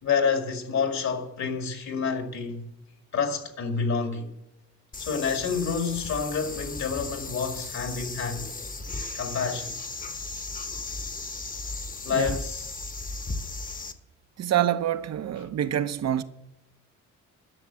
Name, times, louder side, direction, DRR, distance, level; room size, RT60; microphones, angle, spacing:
voice 1, 0.0-2.7 3.1-4.3 5.0-8.5 9.1-9.8 12.0-12.7, left 5 dB, 65° left, 2.3 m, -28 dB
sound 1, 4.9-13.9, left 3 dB, 30° left, 1.1 m, -36 dB
voice 2, 14.4-16.2, right 11 dB, 60° right, 0.9 m, -26 dB
12.0 x 6.6 x 8.2 m
cardioid pair, 90°, 30 cm